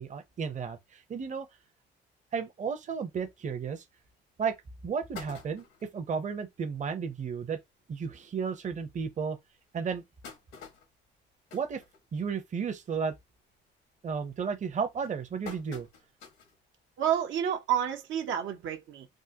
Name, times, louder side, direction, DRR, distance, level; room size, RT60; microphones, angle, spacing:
voice 1, 0.0-1.5 2.3-3.8 4.4-4.5 4.8-5.6 5.9-7.6 7.9-9.4 9.7-10.0 11.5-11.8 12.1-13.1 14.0-15.9, right 6 dB, 40° right, 0.7 m, -33 dB
sound 1, 4.0-4.1 4.6-4.7 4.9-6.0 6.5-6.6 6.9-7.0 7.3-7.5 8.2-8.3 8.8-8.9 9.7-12.5 12.9-13.2 13.6-14.0 14.6-16.6 17.0-17.1 18.3-18.4, left 5 dB, 85° left, 1.4 m, -48 dB
voice 2, 17.0-19.1, right 9 dB, 75° right, 0.7 m, -29 dB
3.6 x 2.1 x 2.8 m
cardioid pair, 90°, 20 cm